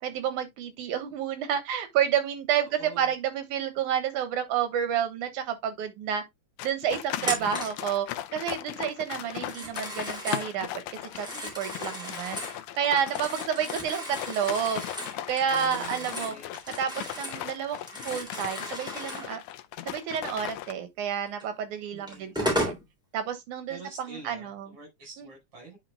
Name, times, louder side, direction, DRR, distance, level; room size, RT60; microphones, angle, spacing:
voice 1, 0.0-6.2 6.6-8.1 8.3-12.4 12.8-16.4 16.7-17.8 18.0-19.4 19.9-22.8 23.1-24.7 25.2-25.3, right 8 dB, 85° right, 2.8 m, -30 dB
voice 2, 2.8-3.1 7.2-7.8 15.5-16.6 21.9-22.4 23.7-25.8, right 4 dB, 50° right, 5.9 m, -46 dB
sound 1, 6.6-20.7, left 13 dB, 80° left, 2.0 m, -38 dB
Telephone, 7.2-7.8 9.3-10.5 11.0-12.6 13.0-17.5 17.7-19.3 21.4-21.5 22.1-22.8, equal, ahead, 2.8 m, -35 dB
9.6 x 5.8 x 2.3 m
omnidirectional pair, 3.4 m